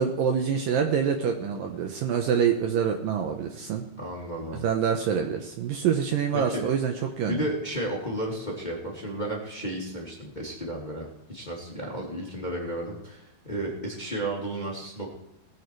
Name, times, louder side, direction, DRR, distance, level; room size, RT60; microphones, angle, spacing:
voice 1, 0.0-3.9 4.5-7.5, right 7 dB, 70° right, 4 dB, 2.4 m, -26 dB
voice 2, 4.0-4.6 6.3-6.6 7.3-15.1, right 1 dB, 15° left, -2 dB, 2.2 m, -33 dB
19.5 x 8.8 x 4.6 m, 0.86 s
omnidirectional pair, 4.7 m